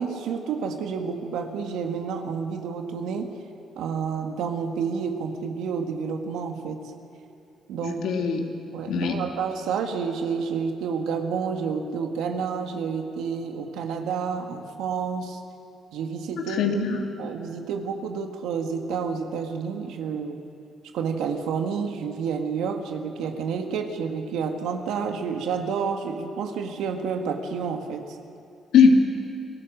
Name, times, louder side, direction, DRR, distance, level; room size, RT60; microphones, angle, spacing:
voice 1, 0.0-3.3 3.8-6.8 7.7-8.0 8.7-15.4 15.9-16.7 17.2-20.4 20.9-28.0, right 6 dB, 90° right, 4 dB, 1.7 m, -29 dB
voice 2, 7.8-8.4 8.9-9.2 16.6-17.0 28.7-28.9, left 6 dB, 80° left, 2 dB, 2.5 m, -20 dB
28.5 x 16.0 x 6.4 m, 2.5 s
cardioid pair, 90°, 0 cm